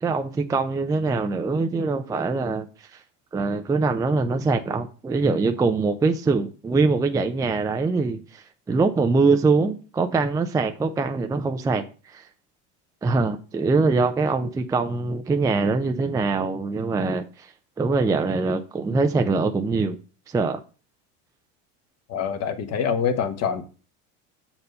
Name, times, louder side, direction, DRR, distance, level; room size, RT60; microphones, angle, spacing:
voice 1, 0.0-2.7 2.9-3.0 3.3-12.2 13.0-17.5 17.8-20.0 20.3-20.6, right 3 dB, 10° right, 0.4 m, -23 dB
voice 2, 22.1-23.6, left 7 dB, 45° left, 1.1 m, -25 dB
6.7 x 4.4 x 5.3 m
supercardioid pair, 115°, 36 cm